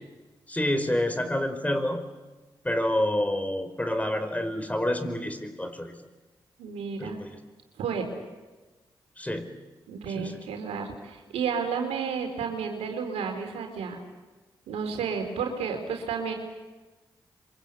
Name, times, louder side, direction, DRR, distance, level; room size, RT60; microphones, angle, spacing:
voice 1, 0.5-2.0 2.6-6.0 7.0-7.4 9.2-9.5 10.1-10.3, left 1 dB, 15° left, 8 dB, 5.0 m, -28 dB
voice 2, 6.6-7.2 7.8-8.1 9.9-14.0 14.7-16.3, right 6 dB, 85° right, 4 dB, 3.9 m, -31 dB
27.5 x 24.5 x 8.4 m, 1.2 s
supercardioid pair, 40°, 11 cm